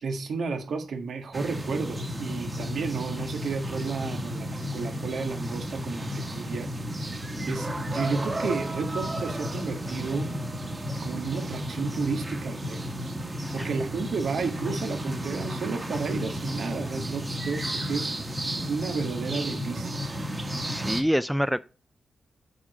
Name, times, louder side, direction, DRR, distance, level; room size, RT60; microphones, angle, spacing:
voice 1, 0.0-6.7 7.1-10.4 11.0-13.1 13.5-18.1 18.7-20.0, right 4 dB, 75° right, 1.5 m, -32 dB
sound 1, 1.3-21.0, equal, 25° right, 1.6 m, -33 dB
voice 2, 20.6-21.6, equal, ahead, 0.3 m, -26 dB
7.3 x 4.9 x 5.2 m
wide cardioid pair, 105°, 0 cm